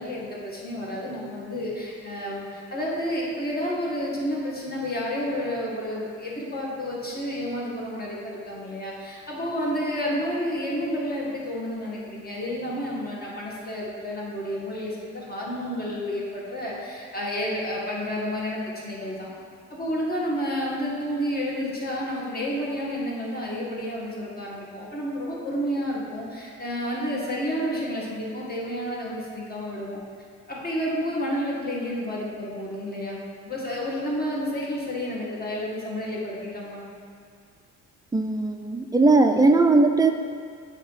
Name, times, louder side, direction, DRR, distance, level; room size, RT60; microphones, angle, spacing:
voice 1, 0.0-19.3 19.7-30.0 30.5-36.9, equal, 30° left, -5 dB, 1.7 m, -30 dB
voice 2, 38.1-40.1, right 3 dB, 10° right, 5 dB, 0.4 m, -19 dB
8.1 x 2.9 x 5.7 m, 2.1 s
cardioid pair, 90°, 30 cm